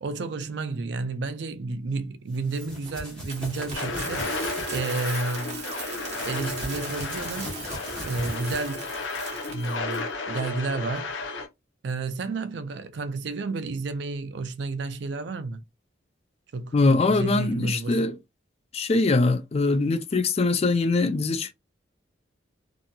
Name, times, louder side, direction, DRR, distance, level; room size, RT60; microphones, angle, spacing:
voice 1, 0.0-5.8 6.2-7.5 8.0-8.9 9.5-11.1 11.8-15.6 16.5-16.8 17.1-18.0, right 3 dB, 65° right, 0.4 m, -31 dB
sound 1, 2.3-4.8 5.8-9.0, equal, 5° left, 0.9 m, -40 dB
Coin (dropping), 2.6-10.0, right 4 dB, 35° right, 0.9 m, -39 dB
sound 2, 3.7-11.5, left 3 dB, 80° left, 0.6 m, -33 dB
voice 2, 16.7-18.2 18.7-21.5, left 3 dB, 35° left, 0.3 m, -22 dB
2.8 x 2.6 x 2.2 m
head